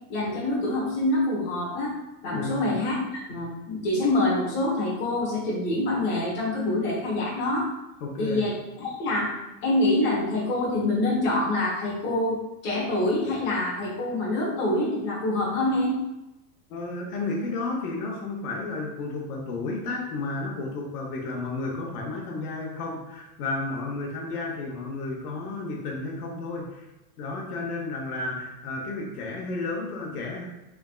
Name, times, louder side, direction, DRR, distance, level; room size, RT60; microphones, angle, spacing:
voice 1, 0.1-1.9 2.2-7.7 8.2-12.4 12.6-16.0, left 1 dB, 25° left, -7 dB, 1.1 m, -26 dB
voice 2, 2.3-2.7 8.0-8.4 16.7-26.9 27.2-30.4, left 3 dB, 75° left, -2 dB, 0.9 m, -32 dB
3.5 x 3.4 x 2.3 m, 0.96 s
supercardioid pair, 175°, 46 cm